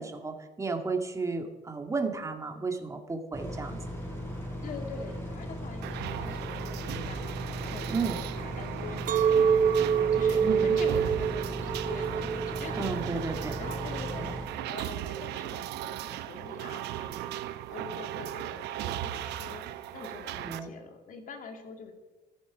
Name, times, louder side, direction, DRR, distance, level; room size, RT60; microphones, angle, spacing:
voice 1, 0.0-3.8 7.9-8.2 10.4-10.8 12.8-13.6 20.4-20.7, right 4 dB, 20° right, 4 dB, 1.9 m, -33 dB
sound 1, 3.3-14.5, equal, 15° left, 5.2 m, -38 dB
voice 2, 4.6-21.9, left 5 dB, 55° left, 4 dB, 2.7 m, -44 dB
sound 2, 5.8-20.6, right 13 dB, 80° right, 0.8 m, -37 dB
Chink clink, 9.1-14.3, right 7 dB, 50° right, 1.0 m, -26 dB
14.0 x 11.5 x 6.1 m, 1.2 s
cardioid pair, 110°, 17 cm